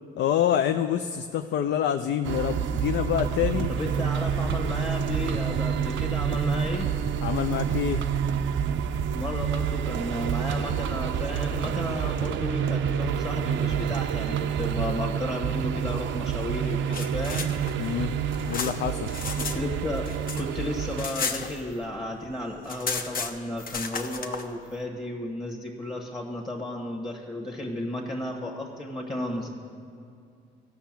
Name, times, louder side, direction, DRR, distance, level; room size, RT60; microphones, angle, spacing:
voice 1, 0.2-3.7 7.2-8.0 17.8-18.1 18.5-19.1, left 10 dB, 65° left, 9 dB, 0.5 m, -26 dB
sound 1, 2.2-21.1, right 8 dB, 70° right, 0.6 m, -28 dB
sound 2, 2.3-12.0, right 5 dB, 25° right, 0.3 m, -36 dB
voice 2, 3.7-6.9 9.1-17.5 19.3-20.0 20.4-29.5, left 1 dB, 25° left, 0 dB, 1.4 m, -33 dB
sound 3, 16.7-19.6 19.9-22.0 22.3-22.4 22.6-24.4, left 5 dB, 45° left, 0.9 m, -33 dB
14.5 x 5.8 x 7.4 m, 2.4 s
cardioid pair, 90°, 20 cm